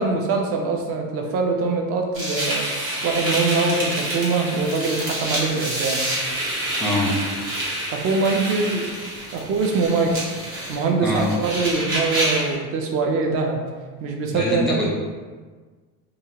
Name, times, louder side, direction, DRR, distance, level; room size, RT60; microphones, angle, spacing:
voice 1, 0.0-2.7 3.0-6.0 7.9-8.9 9.3-10.2 10.7-13.6 14.0-14.9, right 4 dB, 35° right, 3 dB, 0.4 m, -23 dB
sound 1, 2.1-12.5, right 1 dB, 50° right, 1.3 m, -27 dB
voice 2, 6.8-7.2 11.0-11.3 14.3-14.9, left 1 dB, ahead, -6 dB, 0.8 m, -23 dB
2.7 x 2.4 x 2.8 m, 1.4 s
supercardioid pair, 110°, 44 cm